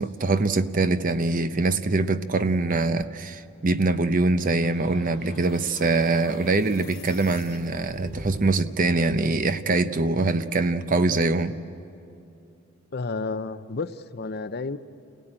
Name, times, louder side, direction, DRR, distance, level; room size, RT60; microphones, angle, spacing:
voice 1, 0.0-11.6, right 3 dB, 40° right, 11 dB, 0.7 m, -23 dB
sound 1, 4.6-8.6, left 2 dB, 30° left, 2.4 m, -44 dB
voice 2, 12.9-14.8, left 3 dB, 50° left, 12 dB, 0.6 m, -31 dB
29.0 x 17.5 x 8.9 m, 2.6 s
head